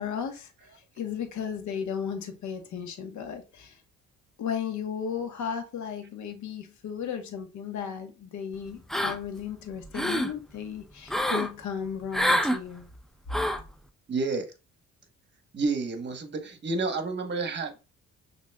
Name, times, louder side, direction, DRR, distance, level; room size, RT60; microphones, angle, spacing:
voice 1, 0.0-3.8 4.4-12.9, left 7 dB, 70° left, 1.1 m, -35 dB
sound 1, 8.9-9.4 9.8-10.3 11.1-11.5 12.1-12.6 13.3-13.7, equal, ahead, 0.4 m, -26 dB
voice 2, 14.1-14.5 15.5-17.8, right 3 dB, 35° right, 1.0 m, -30 dB
6.1 x 2.9 x 2.2 m
cardioid pair, 90°, 30 cm